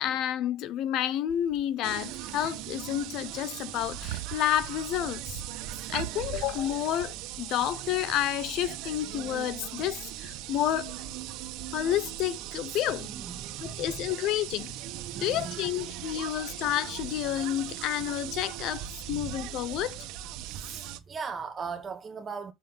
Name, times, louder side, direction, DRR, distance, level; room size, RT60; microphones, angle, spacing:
voice 1, 0.0-5.4 5.9-11.0 11.7-13.1 13.6-14.7 15.2-20.0, left 12 dB, 55° left, 0.7 m, -30 dB
sound 1, 1.3-2.0 2.3-3.0 3.3-3.5 3.9-7.4, right 20 dB, 85° right, 0.4 m, -42 dB
sound 2, 1.8-21.0, right 12 dB, 70° right, 1.4 m, -39 dB
voice 2, 12.6-14.0 15.1-15.6 19.1-19.4 20.5-22.5, right 5 dB, 25° right, 1.1 m, -40 dB
7.4 x 6.3 x 4.0 m
cardioid pair, 135°, 0 cm